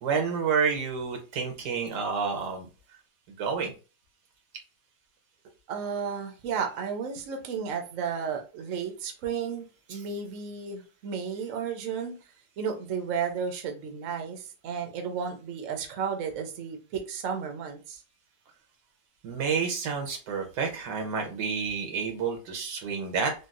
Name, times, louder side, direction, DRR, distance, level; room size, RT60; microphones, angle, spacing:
voice 1, 0.0-3.0 3.3-3.7 9.9-10.0 19.2-23.3, right 5 dB, 85° right, 1.5 m, -29 dB
voice 2, 5.7-12.2 12.6-18.0, right 6 dB, 60° right, 0.9 m, -33 dB
3.9 x 2.3 x 2.5 m
omnidirectional pair, 1.8 m